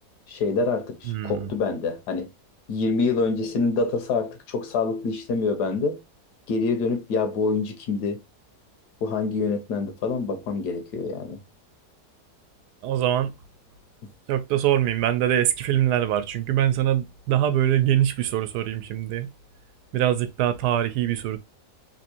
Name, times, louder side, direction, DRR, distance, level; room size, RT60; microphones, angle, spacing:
voice 1, 0.3-2.3 2.7-6.0 6.5-8.2 9.0-11.4, left 4 dB, 80° left, 1.4 m, -26 dB
voice 2, 1.1-1.5 12.8-13.3 14.3-19.3 19.9-21.4, right 11 dB, 85° right, 1.2 m, -23 dB
3.5 x 2.6 x 2.7 m
omnidirectional pair, 1.7 m